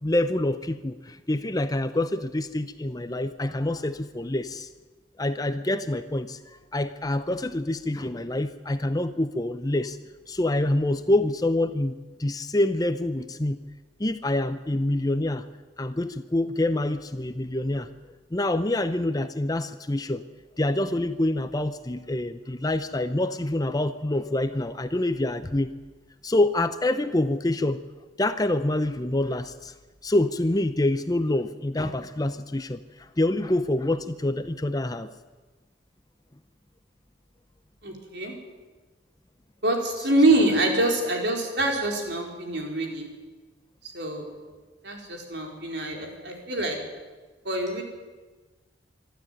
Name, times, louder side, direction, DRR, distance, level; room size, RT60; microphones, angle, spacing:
voice 1, 0.0-4.7 5.2-6.4 6.7-10.0 10.3-11.9 12.2-13.6 14.0-15.4 15.8-17.9 18.3-20.2 20.6-25.7 26.2-27.8 28.2-29.7 30.0-32.8 33.2-35.1, left 1 dB, 20° left, 11 dB, 0.7 m, -26 dB
voice 2, 37.8-38.3 39.6-43.1 43.8-44.3 44.8-46.8 47.4-47.8, right 1 dB, 60° right, 1 dB, 4.5 m, -25 dB
25.0 x 12.5 x 9.2 m, 1.3 s
head